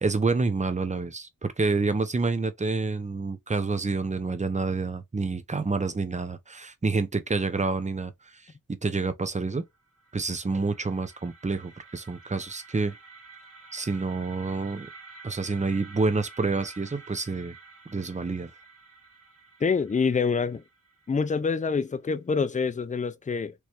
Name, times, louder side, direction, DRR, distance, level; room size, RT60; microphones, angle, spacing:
voice 1, 0.0-8.4 8.8-9.6 10.1-12.9 13.7-14.9 15.2-17.5 17.9-18.5, right 3 dB, 20° right, 0.6 m, -28 dB
sound 1, 9.7-21.7, right 4 dB, 45° right, 1.5 m, -50 dB
voice 2, 19.6-20.6 21.1-23.5, left 5 dB, 25° left, 0.4 m, -26 dB
3.1 x 3.1 x 2.9 m
cardioid pair, 40°, 34 cm